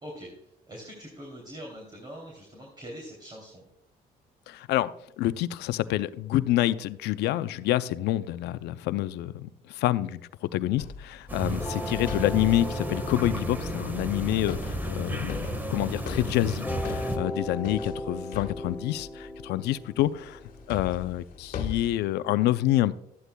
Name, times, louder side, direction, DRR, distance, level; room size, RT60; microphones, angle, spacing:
voice 1, 0.0-3.7 17.2-17.5, equal, 25° right, 0 dB, 3.0 m, -43 dB
voice 2, 4.5-4.9 5.2-15.4 15.7-20.4 20.7-22.9, left 14 dB, 80° left, 14 dB, 0.5 m, -27 dB
sound 1, 10.8-19.4 20.0-21.9, left 7 dB, 55° left, 1.5 m, -41 dB
sound 2, 11.3-17.2, right 1 dB, 10° right, 1.4 m, -33 dB
sound 3, 11.6-16.0 16.6-21.6, left 1 dB, 15° left, 1.1 m, -39 dB
13.5 x 11.0 x 2.3 m, 0.77 s
cardioid pair, 110°, 17 cm